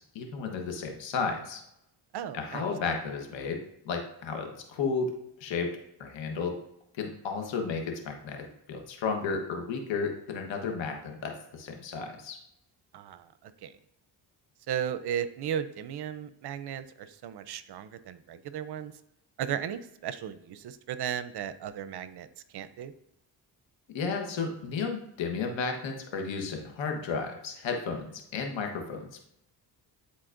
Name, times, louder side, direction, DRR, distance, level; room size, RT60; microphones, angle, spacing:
voice 1, 0.1-1.6 2.3-5.1 5.4-5.7 6.0-6.5 7.0-12.4 23.9-29.3, left 5 dB, 90° left, 3 dB, 1.2 m, -33 dB
voice 2, 2.1-2.6 12.9-13.7 14.7-18.9 19.4-22.3 22.5-22.9, right 9 dB, 65° right, 13 dB, 0.6 m, -35 dB
10.5 x 4.0 x 2.5 m, 0.80 s
cardioid pair, 75°, 43 cm